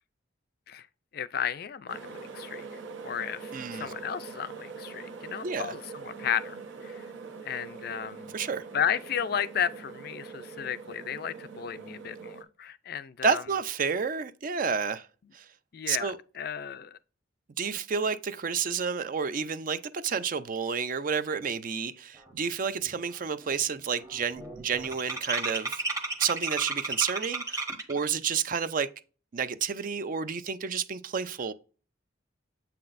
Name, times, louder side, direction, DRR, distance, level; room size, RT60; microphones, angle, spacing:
voice 1, 1.1-2.7 3.0-6.6 6.8-7.0 7.5-8.3 8.7-13.4 15.7-17.0, left 8 dB, 55° left, 0.4 m, -33 dB
sound 1, 1.9-12.4, right 5 dB, 80° right, 0.9 m, -43 dB
voice 2, 3.5-3.9 5.4-5.7 8.3-8.6 13.2-15.1 15.3-15.5 15.9-16.2 17.6-25.8 26.2-28.9 29.3-31.5, right 6 dB, 45° right, 0.4 m, -30 dB
sound 2, 22.4-22.5 22.8-23.2 23.4-28.1, right 3 dB, 15° right, 0.8 m, -34 dB
7.7 x 5.8 x 2.5 m
head